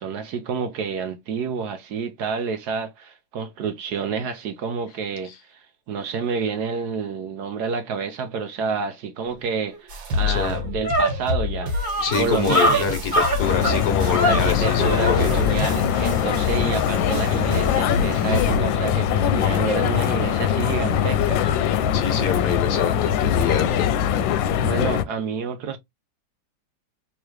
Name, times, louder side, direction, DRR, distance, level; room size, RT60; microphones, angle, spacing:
voice 1, 0.0-11.7 12.2-12.8 14.2-21.5 24.6-25.8, right 5 dB, 70° right, 1.1 m, -29 dB
sound 1, 9.7-9.8 10.2-15.2, equal, 10° right, 1.5 m, -24 dB
sound 2, 9.9-18.6, left 3 dB, 85° right, 1.9 m, -28 dB
voice 2, 12.0-15.3 21.9-23.9, left 6 dB, 60° left, 1.4 m, -26 dB
sound 3, 13.4-25.0, left 9 dB, 90° left, 1.3 m, -22 dB
3.5 x 3.0 x 3.1 m
omnidirectional pair, 2.0 m